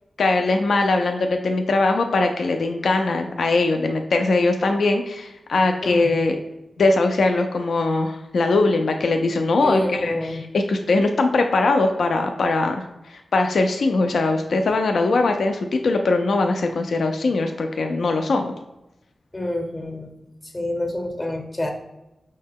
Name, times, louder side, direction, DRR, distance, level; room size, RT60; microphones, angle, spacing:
voice 1, 0.2-6.4 6.8-10.1 10.5-12.8 13.1-18.5, left 3 dB, 80° left, 4 dB, 0.3 m, -21 dB
voice 2, 5.8-6.3 9.6-10.4 19.3-20.2 20.4-21.7, left 1 dB, 25° left, 4 dB, 0.6 m, -28 dB
5.5 x 2.1 x 3.5 m, 0.95 s
wide cardioid pair, 85°, 0 cm